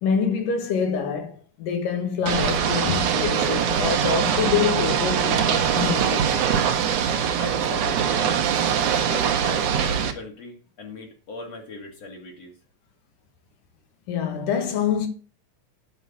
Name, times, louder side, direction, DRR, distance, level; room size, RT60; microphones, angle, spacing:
voice 1, 0.0-6.7 14.1-15.1, left 7 dB, 85° left, 3.2 m, -26 dB
Ocean / Boat Water vehicle, 2.3-10.1, right 8 dB, 70° right, 2.5 m, -22 dB
voice 2, 7.3-8.4 9.1-12.5, left 2 dB, 55° left, 2.9 m, -38 dB
9.5 x 5.6 x 8.3 m
omnidirectional pair, 3.8 m